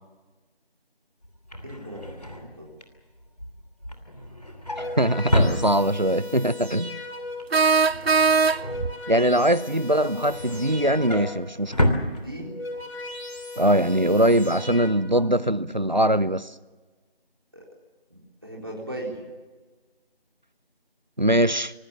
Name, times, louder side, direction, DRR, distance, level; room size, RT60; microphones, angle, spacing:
Drawer open or close, 1.2-6.3 6.6-7.0 7.2-9.4 9.9-12.8 13.2-13.4 13.7-13.8, equal, 40° left, 2.9 m, -29 dB
voice 1, 1.6-2.7 9.0-9.3 12.1-12.5 17.5-17.6 18.1-19.2, right 1 dB, 25° right, -3 dB, 3.8 m, -38 dB
sound 1, 4.7-7.7 8.4-11.6 12.3-14.9, left 2 dB, 85° left, 5.9 m, -37 dB
voice 2, 5.0-7.0 9.1-12.0 13.6-16.5 21.2-21.7, right 1 dB, 50° right, 19 dB, 0.8 m, -22 dB
sound 2, 5.2-5.3 7.5-8.9, right 5 dB, 85° right, 0.6 m, -20 dB
25.0 x 19.0 x 7.2 m, 1.3 s
figure-of-eight pair, 180°, 30 cm